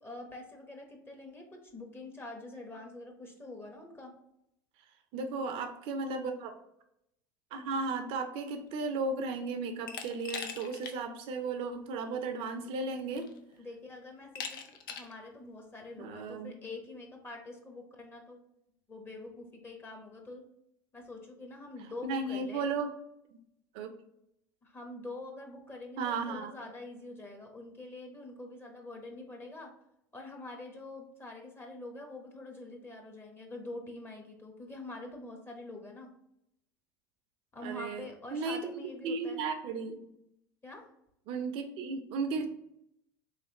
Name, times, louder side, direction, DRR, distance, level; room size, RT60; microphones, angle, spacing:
voice 1, 0.0-4.1 13.6-18.4 18.9-20.4 20.9-22.7 24.6-29.7 30.1-36.1 37.5-39.4 40.6-40.8, left 2 dB, 20° left, 2 dB, 1.0 m, -45 dB
voice 2, 5.1-6.5 7.5-13.3 16.0-16.5 22.0-22.9 23.7-23.9 26.0-26.5 37.6-40.0 41.3-42.5, right 4 dB, 60° right, 7 dB, 0.6 m, -35 dB
Glass, 9.9-11.0 11.4-11.5 12.6-12.7 13.2-13.6 14.4-15.2, left 6 dB, 85° left, 0.5 m, -41 dB
3.6 x 3.2 x 2.9 m, 0.79 s
hypercardioid pair, 90°, 11 cm